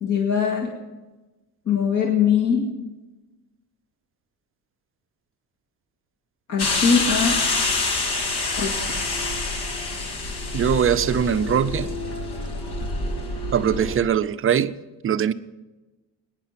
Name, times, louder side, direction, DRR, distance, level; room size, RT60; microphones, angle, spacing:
voice 1, 0.0-0.7 1.7-2.7 6.5-7.4 8.6-8.9, left 6 dB, 50° left, 2.1 m, -21 dB
sound 1, 6.6-14.0, left 3 dB, 75° left, 2.5 m, -26 dB
voice 2, 10.5-11.9 13.5-14.7 15.0-15.3, right 8 dB, 35° right, 0.5 m, -21 dB
21.0 x 10.5 x 5.8 m
cardioid pair, 165°, 40 cm